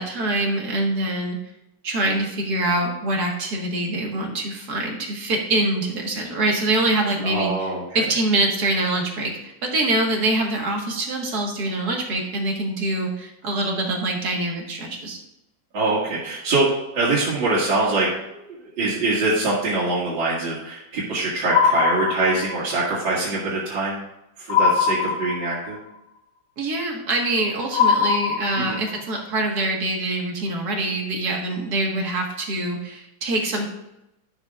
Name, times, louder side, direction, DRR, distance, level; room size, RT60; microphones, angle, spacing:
voice 1, 0.0-1.4 1.8-7.5 7.9-15.2 26.6-33.7, right 2 dB, 55° right, 0 dB, 2.1 m, -24 dB
voice 2, 7.2-8.1 15.7-18.4 18.8-24.0 24.4-25.8 28.6-28.8, right 2 dB, 75° right, -8 dB, 2.9 m, -24 dB
sound 1, 21.5-22.7 24.5-25.7 27.7-29.0, left 6 dB, 35° left, 2.3 m, -21 dB
12.0 x 7.4 x 2.5 m, 0.88 s
omnidirectional pair, 2.1 m